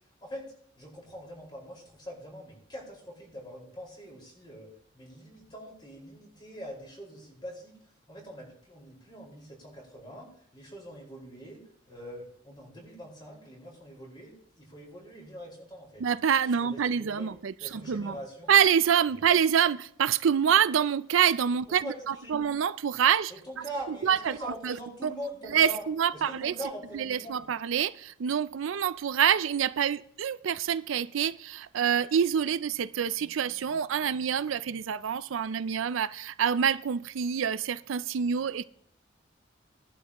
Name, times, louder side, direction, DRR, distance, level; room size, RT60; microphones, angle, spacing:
voice 1, 0.7-4.7 4.9-7.7 8.1-16.0 16.6-17.3 17.6-18.5 21.8-22.0 22.2-22.4 23.4-25.9 26.1-27.5, right 1 dB, 25° left, 5.0 m, -43 dB
voice 2, 16.0-18.2 18.5-24.8 25.0-25.1 25.5-26.6 26.9-38.6, right 8 dB, 85° right, 0.4 m, -26 dB
18.5 x 11.5 x 3.0 m
head